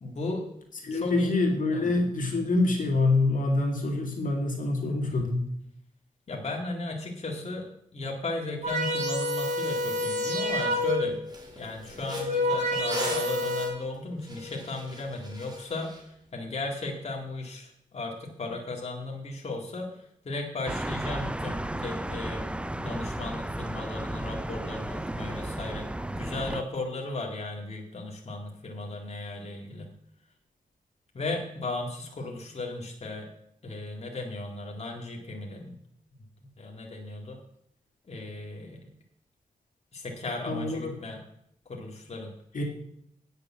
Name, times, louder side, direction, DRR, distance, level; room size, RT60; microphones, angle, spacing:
voice 1, 0.0-0.5 0.9-1.3 1.7-1.9 4.8-5.2 6.3-11.2 11.5-16.0 16.3-29.9 31.1-33.3 33.6-35.8 36.6-37.4 38.1-38.9 39.9-41.3 41.7-42.3, left 2 dB, 50° left, 0 dB, 1.9 m, -36 dB
voice 2, 0.8-5.5 40.5-40.9 42.5-42.6, left 2 dB, 65° left, 1 dB, 2.1 m, -26 dB
sound 1, 8.6-11.3 12.0-13.7, left 1 dB, 55° right, 3.4 m, -28 dB
sound 2, 10.2-10.3 10.7-10.9 11.3-16.0, left 1 dB, 30° right, 2.9 m, -40 dB
sound 3, 20.7-26.6, right 1 dB, 5° right, 0.4 m, -34 dB
9.1 x 6.8 x 7.2 m, 0.72 s
cardioid pair, 80°, 15 cm